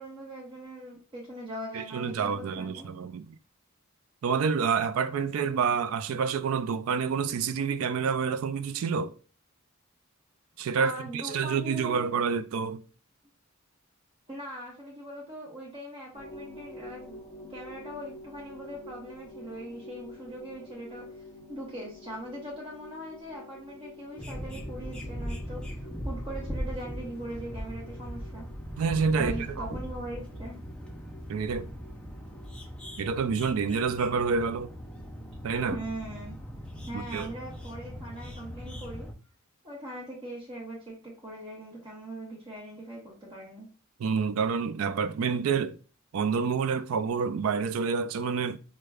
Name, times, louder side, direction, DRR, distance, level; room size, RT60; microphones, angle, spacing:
voice 1, 0.0-2.9 10.8-12.1 14.3-17.2 17.5-21.1 21.5-28.5 29.2-30.6 35.7-36.4 36.9-39.1 39.6-43.7, right 1 dB, 25° right, 0.9 m, -41 dB
voice 2, 1.7-3.4 4.2-9.1 10.6-12.8 28.8-29.7 31.3-31.7 33.0-34.7 35.4-35.8 36.9-37.3 44.0-45.8 46.1-48.6, right 5 dB, 75° right, 0.3 m, -28 dB
sound 1, 16.1-35.9, left 1 dB, 20° left, 1.3 m, -50 dB
sound 2, 24.2-39.1, equal, 5° left, 0.5 m, -39 dB
4.8 x 2.2 x 2.3 m
head